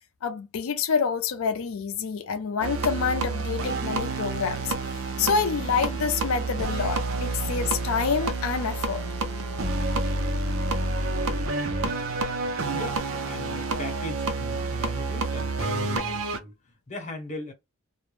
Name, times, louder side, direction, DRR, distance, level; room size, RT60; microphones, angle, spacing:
voice 1, 0.2-4.7 5.2-9.0, left 5 dB, 80° left, 0.4 m, -27 dB
sound 1, 2.6-16.4, right 3 dB, 80° right, 0.6 m, -29 dB
voice 2, 12.7-16.5 16.9-17.5, left 1 dB, 35° left, 0.9 m, -38 dB
2.4 x 2.0 x 3.1 m
head